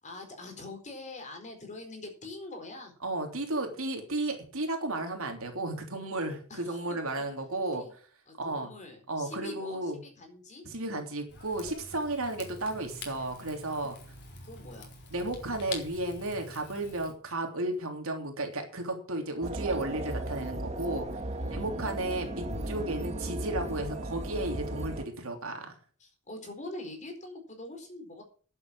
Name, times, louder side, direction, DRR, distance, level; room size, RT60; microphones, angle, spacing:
voice 1, 0.0-2.9 6.5-6.8 7.7-7.9 8.3-9.8 10.2-10.6 14.4-14.9 21.4-21.7 26.0-28.2, left 2 dB, 35° left, 4 dB, 4.2 m, -44 dB
voice 2, 3.0-8.1 8.4-8.7 9.1-10.0 10.6-13.9 15.1-21.1 21.5-25.7, right 2 dB, 70° right, 3 dB, 3.2 m, -33 dB
Rain / Fire, 11.3-17.1, left 3 dB, 55° left, 4.1 m, -46 dB
sound 1, 19.4-25.0, right 1 dB, 30° right, 1.5 m, -35 dB
11.0 x 8.3 x 7.5 m, 0.42 s
head